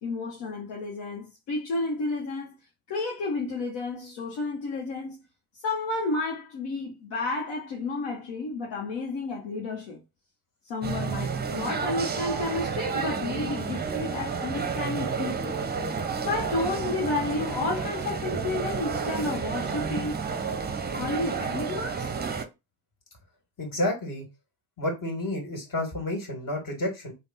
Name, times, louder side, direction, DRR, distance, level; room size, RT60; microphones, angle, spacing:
voice 1, 0.0-2.6 2.9-5.2 5.5-10.0 10.6-15.6 16.2-20.2 21.0-22.1, left 3 dB, 70° left, 0.9 m, -31 dB
sound 1, 10.8-22.5, right 5 dB, 20° right, 0.6 m, -31 dB
voice 2, 23.6-24.3 24.8-27.1, left 1 dB, 45° left, 2.2 m, -30 dB
3.4 x 2.2 x 4.0 m
hypercardioid pair, 55°, 46 cm